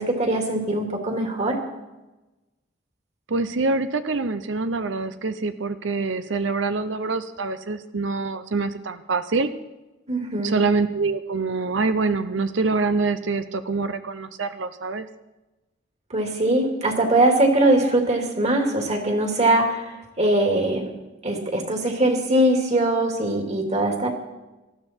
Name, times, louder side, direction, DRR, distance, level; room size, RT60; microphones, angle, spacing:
voice 1, 0.0-1.5 10.1-10.6 16.1-19.9 20.2-20.9 21.2-24.1, right 1 dB, 40° right, 3 dB, 2.6 m, -21 dB
voice 2, 3.3-9.5 10.4-15.1, right 3 dB, 80° right, 11 dB, 0.7 m, -25 dB
19.0 x 13.5 x 4.5 m, 1.1 s
head